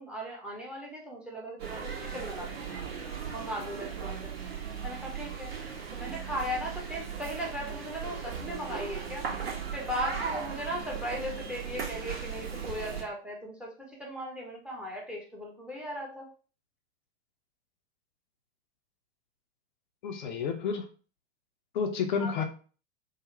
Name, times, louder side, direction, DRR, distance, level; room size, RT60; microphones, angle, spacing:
voice 1, 0.0-4.3 4.8-5.5 5.9-9.3 9.7-16.3 22.2-22.3, equal, 5° right, -1 dB, 0.7 m, -38 dB
sound 1, 1.6-13.0, right 6 dB, 60° right, 0.9 m, -37 dB
voice 2, 20.0-20.9 21.7-22.4, left 6 dB, 45° left, 4 dB, 0.5 m, -30 dB
3.9 x 2.0 x 3.1 m, 0.38 s
figure-of-eight pair, 95°, 34 cm